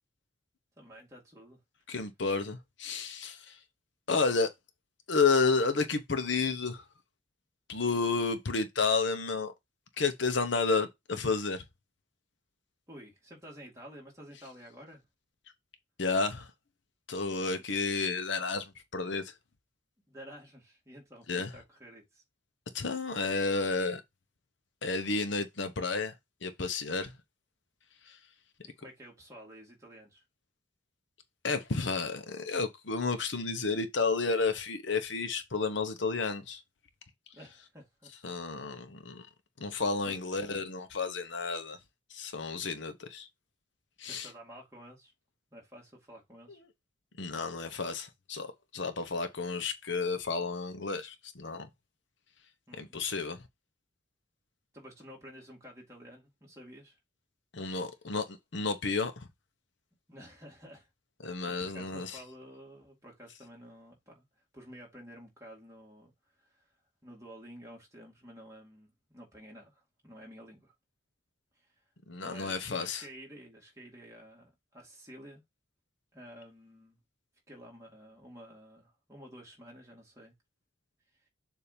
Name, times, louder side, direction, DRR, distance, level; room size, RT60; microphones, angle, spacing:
voice 1, 0.8-1.6 12.9-15.0 20.1-22.2 28.6-30.2 37.3-38.1 40.0-40.2 44.1-45.1 45.5-46.6 52.7-52.9 54.7-57.0 60.1-60.9 61.2-64.3 64.5-66.1 66.4-66.7 67.0-70.7 71.6-71.7 72.2-75.4 76.1-77.0 77.5-80.3, equal, 15° right, 2.5 m, -51 dB
voice 2, 1.9-3.6 4.1-4.5 5.1-6.9 7.7-9.5 10.0-11.6 16.0-16.5 17.1-19.3 21.3-21.5 22.7-24.0 24.8-26.1 26.4-27.1 28.1-28.2 31.4-36.6 38.2-39.3 39.6-41.8 42.1-43.3 44.0-44.3 47.2-51.7 52.7-53.4 57.5-59.3 61.2-62.2 72.1-73.0, left 4 dB, 70° left, 0.9 m, -31 dB
7.0 x 2.8 x 5.1 m
head